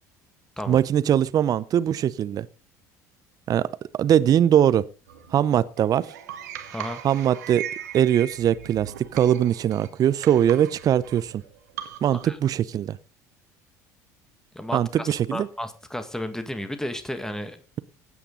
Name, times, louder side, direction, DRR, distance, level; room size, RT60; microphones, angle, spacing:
voice 1, 0.7-2.5 3.5-3.7 3.9-4.9 5.3-6.1 7.0-7.7 7.9-11.4 12.0-13.0 14.7-15.5, right 10 dB, 45° right, 0.6 m, -21 dB
sound 1, 5.1-12.3, right 10 dB, 80° right, 1.7 m, -39 dB
voice 2, 6.7-7.0 12.3-12.4 14.5-17.8, left 1 dB, 5° left, 1.8 m, -33 dB
16.5 x 8.5 x 3.9 m
hypercardioid pair, 65°, 9 cm